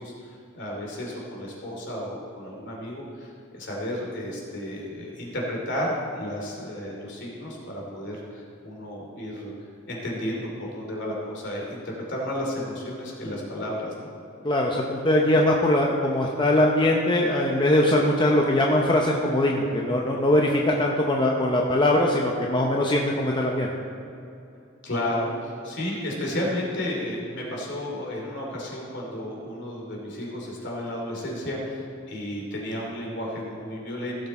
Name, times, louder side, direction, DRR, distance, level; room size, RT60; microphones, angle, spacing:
voice 1, 0.0-14.1 24.8-34.3, left 1 dB, 60° left, -2 dB, 2.7 m, -32 dB
voice 2, 14.4-23.7, left 1 dB, 25° left, -1 dB, 0.7 m, -21 dB
15.5 x 6.7 x 4.2 m, 2.7 s
head